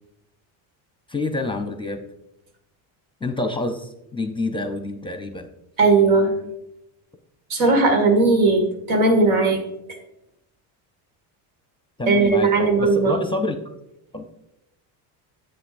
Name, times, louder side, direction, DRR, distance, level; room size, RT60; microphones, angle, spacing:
voice 1, 1.1-2.0 3.2-5.5 12.0-13.6 14.1-14.3, left 2 dB, 10° left, 6 dB, 0.6 m, -27 dB
voice 2, 5.8-6.3 7.5-9.6 12.1-13.2, right 3 dB, 85° right, 4 dB, 2.1 m, -17 dB
9.8 x 7.9 x 2.6 m, 0.84 s
cardioid pair, 115°, 47 cm